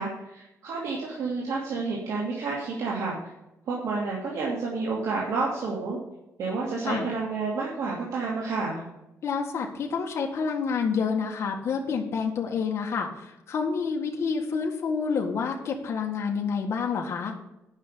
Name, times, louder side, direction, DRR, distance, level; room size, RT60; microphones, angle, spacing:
voice 1, 0.0-3.2 3.7-6.0 6.4-8.8, right 4 dB, 80° right, -4 dB, 2.6 m, -30 dB
voice 2, 9.2-17.3, left 5 dB, 55° left, 0 dB, 1.8 m, -28 dB
11.0 x 5.9 x 6.8 m, 0.90 s
cardioid pair, 135°, 6 cm